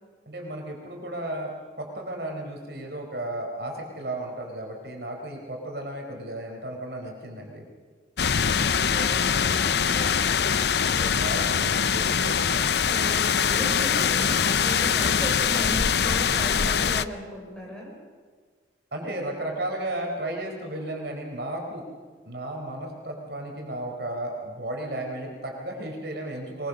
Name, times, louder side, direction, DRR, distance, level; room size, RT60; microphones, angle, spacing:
voice 1, 0.3-7.6 10.8-12.7 18.9-21.8 22.3-26.7, right 1 dB, 60° right, 1 dB, 4.4 m, -34 dB
sound 1, 8.2-17.1, left 7 dB, 65° left, 0.6 m, -23 dB
voice 2, 8.4-10.7 12.8-18.0, equal, 5° left, -2 dB, 6.2 m, -36 dB
23.5 x 22.0 x 6.7 m, 1.5 s
head